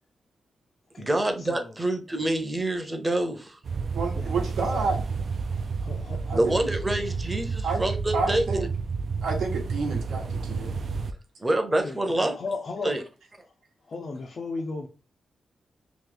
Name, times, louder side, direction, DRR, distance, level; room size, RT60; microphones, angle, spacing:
voice 1, 1.0-3.6 6.3-8.4 11.4-12.4 12.8-13.0, right 1 dB, 15° right, 0.7 m, -26 dB
sound 1, 3.6-11.1, right 5 dB, 50° right, 0.3 m, -30 dB
voice 2, 3.9-5.0 6.3-6.6 7.6-7.8 8.1-8.7 9.2-10.7, right 4 dB, 90° right, 1.0 m, -29 dB
voice 3, 5.8-6.5 11.8-13.0 13.9-14.9, left 3 dB, 40° left, 0.5 m, -35 dB
3.0 x 2.8 x 3.8 m
wide cardioid pair, 140°, 0 cm